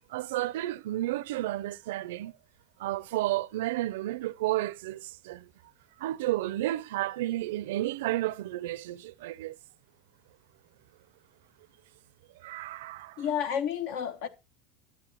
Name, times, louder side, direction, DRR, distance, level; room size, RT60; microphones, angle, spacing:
voice 1, 0.1-2.3 2.8-5.5 6.0-9.6 12.4-13.2, right 16 dB, 85° right, 0.4 m, -32 dB
voice 2, 13.2-14.3, left 8 dB, 70° left, 1.1 m, -30 dB
12.0 x 7.3 x 3.0 m
supercardioid pair, 115°, 0 cm